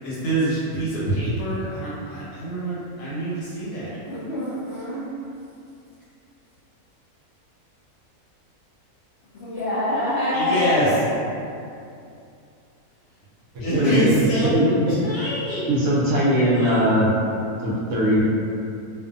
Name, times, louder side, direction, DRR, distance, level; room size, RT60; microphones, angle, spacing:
voice 1, 0.0-4.0 10.3-10.9 13.6-14.5 15.0-15.7 16.3-16.8, right 1 dB, 85° left, -10 dB, 1.4 m, -26 dB
voice 2, 4.0-5.1 9.3-11.0, left 1 dB, 60° left, -13 dB, 0.7 m, -25 dB
voice 3, 13.5-14.7 15.7-17.1 17.6-18.2, equal, 70° right, -5 dB, 0.8 m, -20 dB
2.5 x 2.4 x 2.4 m, 2.5 s
omnidirectional pair, 1.6 m